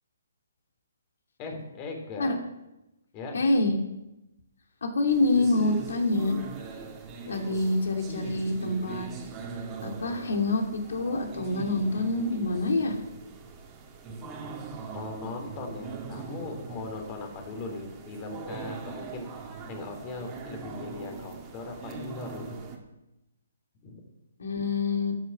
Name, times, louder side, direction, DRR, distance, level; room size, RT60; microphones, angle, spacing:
voice 1, 1.4-2.4 3.1-3.3 14.2-22.5 23.8-24.0, left 3 dB, 30° left, 3 dB, 3.6 m, -39 dB
voice 2, 3.3-3.7 4.8-6.4 7.3-9.1 9.8-13.0 24.4-25.2, left 2 dB, 70° left, 3 dB, 2.8 m, -26 dB
sound 1, 5.1-22.8, right 5 dB, 20° right, 2.2 m, -41 dB
12.0 x 9.4 x 6.2 m, 0.94 s
hypercardioid pair, 145°, 0 cm